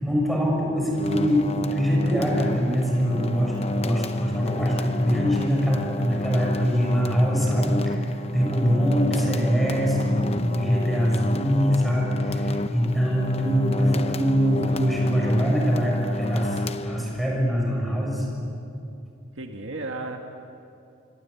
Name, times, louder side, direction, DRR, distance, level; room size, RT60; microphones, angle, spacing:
voice 1, 0.0-8.1 8.3-18.2, equal, ahead, -2 dB, 6.7 m, -23 dB
sound 1, 0.9-17.4, left 2 dB, 30° left, 0.8 m, -31 dB
voice 2, 19.4-20.2, right 2 dB, 65° right, 3 dB, 1.9 m, -34 dB
28.0 x 22.5 x 8.5 m, 2.7 s
head